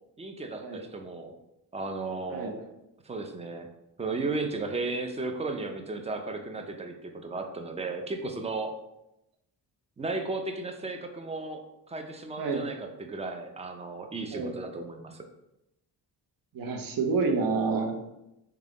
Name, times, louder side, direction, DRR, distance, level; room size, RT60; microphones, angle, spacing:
voice 1, 0.2-1.3 1.7-2.5 3.0-3.7 4.0-8.7 10.0-15.2, right 3 dB, 15° right, 4 dB, 0.4 m, -35 dB
voice 2, 16.5-17.9, right 4 dB, 55° right, 3 dB, 0.7 m, -28 dB
3.7 x 2.3 x 3.4 m, 0.87 s
cardioid pair, 90°, 40 cm